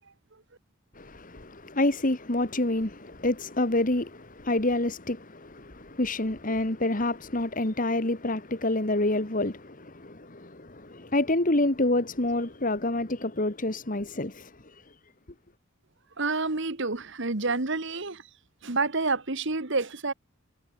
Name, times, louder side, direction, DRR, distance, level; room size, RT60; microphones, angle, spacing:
voice 1, 1.0-14.5, left 2 dB, 40° left, 2.0 m, -28 dB
voice 2, 16.2-18.2 18.6-20.1, right 3 dB, 60° right, 1.8 m, -28 dB
head